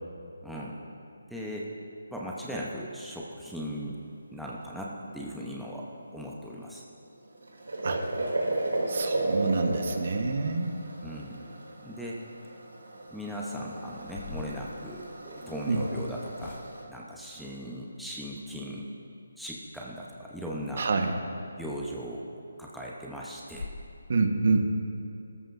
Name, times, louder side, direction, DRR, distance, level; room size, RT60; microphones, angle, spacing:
voice 1, 0.4-0.8 1.3-1.7 2.1-4.0 4.3-5.9 6.1-6.8 11.0-11.4 11.8-12.2 13.1-16.6 16.9-18.9 19.4-20.9 21.6-22.3 22.6-23.7, equal, ahead, -5 dB, 0.8 m, -38 dB
sound 1, 7.0-16.8, right 2 dB, 85° right, 2.8 m, -34 dB
voice 2, 8.9-10.7 15.7-15.8 20.8-21.2 24.1-24.7, right 3 dB, 55° right, 5 dB, 1.2 m, -27 dB
sound 2, 13.1-13.4 13.9-15.7 16.4-17.0 21.6-21.7 22.1-22.2 22.6-22.7 23.1-23.2 23.5-23.8, left 4 dB, 60° left, 0.7 m, -44 dB
18.5 x 13.5 x 2.6 m, 2.6 s
hypercardioid pair, 165°, 0 cm